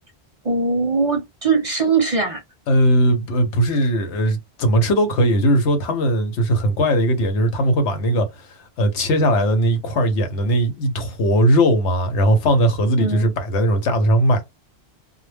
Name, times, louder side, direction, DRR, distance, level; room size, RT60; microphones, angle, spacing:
voice 1, 0.4-2.4 13.0-13.3, right 4 dB, 40° right, 0.6 m, -20 dB
voice 2, 2.7-8.3 8.8-14.4, equal, 85° left, 1.0 m, -18 dB
2.2 x 2.1 x 3.3 m
omnidirectional pair, 1.1 m